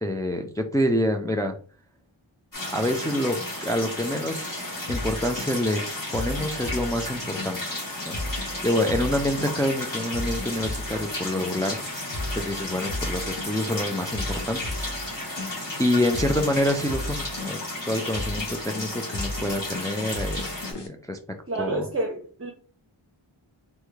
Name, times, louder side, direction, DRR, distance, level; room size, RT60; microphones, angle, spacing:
voice 1, 0.0-1.6 2.7-5.8 6.1-7.6 8.1-11.8 12.3-15.2 15.8-17.6 17.9-21.2 21.6-21.9, left 1 dB, 10° left, 0.3 m, -27 dB
sound 1, 2.5-20.7, left 2 dB, 40° left, 1.4 m, -33 dB
sound 2, 4.9-20.9, left 1 dB, 60° left, 0.8 m, -35 dB
voice 2, 21.5-22.5, right 2 dB, 30° right, 0.6 m, -29 dB
3.4 x 2.1 x 3.1 m
wide cardioid pair, 45°, 48 cm